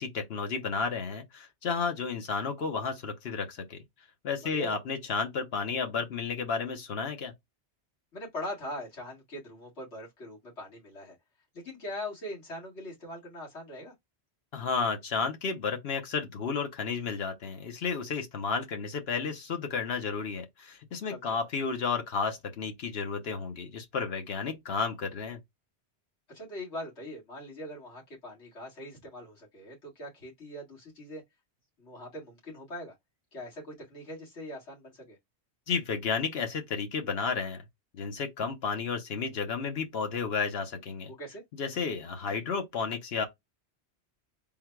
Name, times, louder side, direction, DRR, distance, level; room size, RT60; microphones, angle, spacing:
voice 1, 0.0-3.8 4.2-7.3 14.5-25.4 35.7-37.6 37.9-41.1 41.5-43.2, left 5 dB, 65° left, 1.1 m, -32 dB
voice 2, 4.4-4.8 8.1-11.2 11.5-13.9 21.1-21.4 26.3-31.2 31.8-32.9 33.3-35.2 41.1-41.4, left 1 dB, 85° left, 2.2 m, -41 dB
3.8 x 2.2 x 4.5 m
omnidirectional pair, 1.1 m